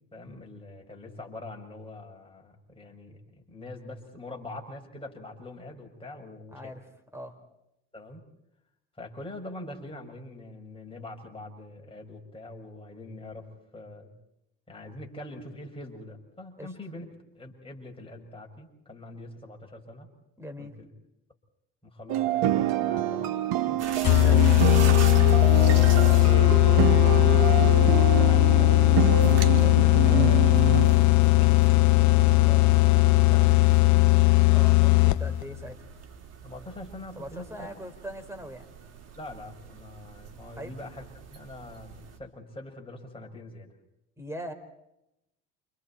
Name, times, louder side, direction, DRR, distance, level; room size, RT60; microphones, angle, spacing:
voice 1, 0.1-6.7 7.9-8.2 9.0-14.1 14.7-17.1 17.4-20.1 20.6-20.9 21.8-23.8 25.6-31.6 32.1-34.1 36.4-37.8 39.2-43.7, left 2 dB, 15° left, 0 dB, 7.0 m, -43 dB
voice 2, 6.5-6.8 7.1-7.4 16.6-16.7 20.4-20.8 24.2-24.4 34.5-35.8 37.2-38.7 40.6-40.8 44.2-44.5, equal, 10° right, 6 dB, 5.4 m, -40 dB
sound 1, 22.1-31.1, right 12 dB, 75° right, 1.6 m, -27 dB
sound 2, 23.8-42.2, right 5 dB, 45° right, 4.1 m, -42 dB
sound 3, 24.0-35.4, left 17 dB, 55° left, 0.8 m, -19 dB
29.0 x 28.5 x 4.5 m, 0.85 s
supercardioid pair, 75°, 35 cm